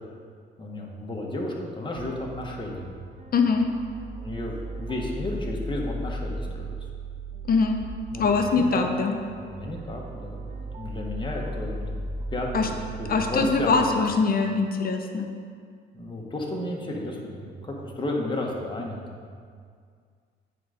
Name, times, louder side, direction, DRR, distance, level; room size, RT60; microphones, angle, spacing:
voice 1, 0.6-2.9 4.2-6.7 8.1-8.9 9.4-14.0 15.9-19.3, left 1 dB, 25° left, -2 dB, 1.4 m, -33 dB
sound 1, 2.0-13.7, right 1 dB, 35° right, 0.6 m, -37 dB
voice 2, 3.3-3.7 7.5-7.8 8.2-9.1 12.5-12.7 13.1-15.3, left 4 dB, 50° left, 4 dB, 0.8 m, -22 dB
9.2 x 3.9 x 5.1 m, 2.1 s
cardioid pair, 90°, 20 cm